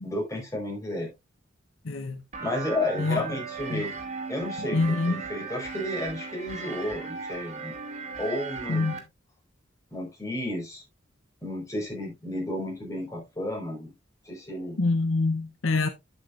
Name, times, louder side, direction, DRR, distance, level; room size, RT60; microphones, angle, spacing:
voice 1, 0.0-1.1 2.4-3.9 4.3-7.7 8.2-8.9 9.9-10.8 11.4-13.9 14.2-14.8, left 1 dB, 15° left, 4.5 m, -32 dB
voice 2, 1.8-2.2 3.0-3.2 3.7-3.8 4.7-5.2 8.7-9.0 14.8-15.9, left 3 dB, 75° left, 0.8 m, -25 dB
sound 1, 2.3-9.0, right 5 dB, 40° right, 2.3 m, -37 dB
9.0 x 8.2 x 2.5 m
head